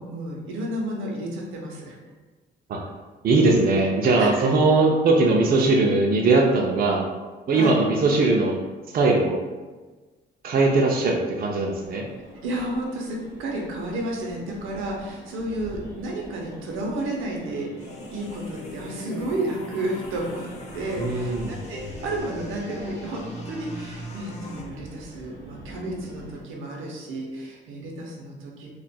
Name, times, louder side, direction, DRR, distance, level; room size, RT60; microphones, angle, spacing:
voice 1, 0.0-2.0 4.2-4.5 7.5-7.7 12.4-28.7, right 1 dB, 85° right, -1 dB, 0.7 m, -32 dB
voice 2, 3.2-7.1 7.5-8.6 8.9-9.4 10.4-12.1 21.0-21.6, right 3 dB, 50° right, -1 dB, 0.5 m, -20 dB
sound 1, 11.8-26.4, equal, 60° left, 1.1 m, -44 dB
sound 2, 17.8-24.6, left 1 dB, 35° left, 0.7 m, -40 dB
4.1 x 2.4 x 2.2 m, 1.3 s
cardioid pair, 90°, 20 cm